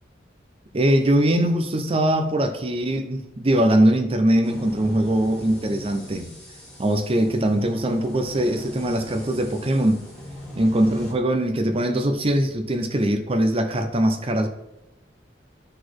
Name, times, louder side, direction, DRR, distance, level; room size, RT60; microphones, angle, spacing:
voice 1, 0.7-6.3 6.8-10.0 10.6-14.5, right 1 dB, 30° right, 6 dB, 0.7 m, -21 dB
sound 1, 4.4-11.1, equal, 5° left, 2.3 m, -40 dB
9.9 x 4.2 x 4.7 m, 0.92 s
head